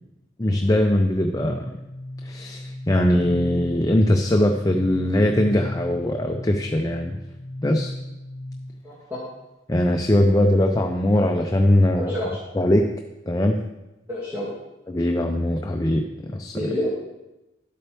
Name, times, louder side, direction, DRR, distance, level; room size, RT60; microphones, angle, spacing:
voice 1, 0.4-1.7 2.2-7.2 7.6-7.9 9.7-12.1 12.5-12.8 13.3-13.6 14.9-16.7, left 1 dB, 20° left, 3 dB, 0.5 m, -21 dB
sound 1, 1.4-8.9, left 1 dB, 50° left, 1.6 m, -36 dB
voice 2, 8.8-9.2 12.0-12.3 14.1-14.5 16.5-16.9, equal, 15° right, -10 dB, 2.3 m, -28 dB
12.0 x 8.4 x 3.4 m, 0.99 s
head